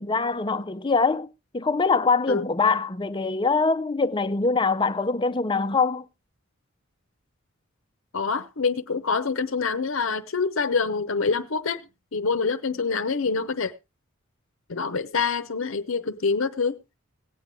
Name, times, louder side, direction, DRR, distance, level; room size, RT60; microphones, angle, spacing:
voice 1, 0.0-6.1, left 4 dB, 20° left, 0.5 m, -23 dB
voice 2, 8.1-13.7 14.7-16.8, left 4 dB, 70° left, 0.7 m, -26 dB
18.0 x 8.3 x 3.1 m
head